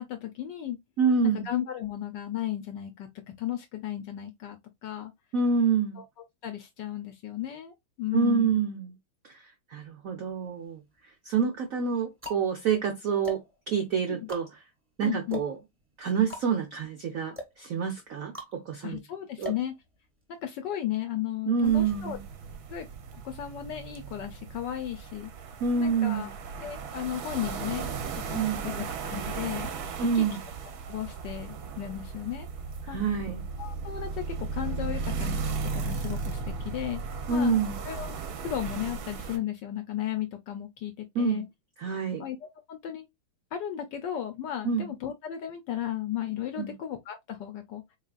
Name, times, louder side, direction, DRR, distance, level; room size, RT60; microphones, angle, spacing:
voice 1, 0.0-0.8 1.3-5.1 6.0-6.1 6.4-8.6 14.1-14.3 15.0-15.4 18.8-19.8 20.3-22.2 22.7-22.9 23.1-25.3 25.8-26.3 26.6-27.9 28.3-29.7 30.1-30.4 30.9-32.5 32.9-33.0 33.6-35.4 35.7-37.0 37.3-38.1 38.4-41.5 42.2-43.1 43.5-47.8, left 11 dB, 75° left, 1.0 m, -35 dB
voice 2, 1.0-1.4 5.3-6.0 8.1-8.9 9.3-9.4 9.7-10.8 11.2-13.4 13.7-14.4 15.0-15.6 16.0-18.3 18.7-19.0 19.4-19.5 21.5-22.2 25.6-26.3 28.3-28.6 30.0-30.4 32.9-33.4 37.3-37.8 41.2-41.4 41.8-42.2 44.6-44.9 46.6-46.7, right 5 dB, 90° right, 0.7 m, -27 dB
sound 1, 10.3-11.0 11.7-20.4, left 2 dB, 10° right, 0.9 m, -45 dB
sound 2, 21.6-39.4, right 4 dB, 65° right, 1.0 m, -36 dB
4.0 x 3.6 x 2.3 m
omnidirectional pair, 2.4 m